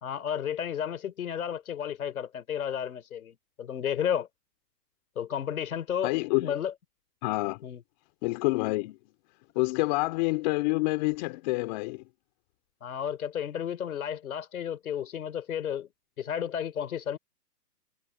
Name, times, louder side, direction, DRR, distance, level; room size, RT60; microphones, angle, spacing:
voice 1, 0.0-4.3 5.2-6.1 6.4-6.7 7.6-7.8 12.8-15.9 16.2-17.2, left 9 dB, 60° left, 3.9 m, -32 dB
voice 2, 6.0-6.5 7.2-7.6 8.2-9.0 9.5-12.0, left 23 dB, 25° left, 2.6 m, -27 dB
hypercardioid pair, 155°, 48 cm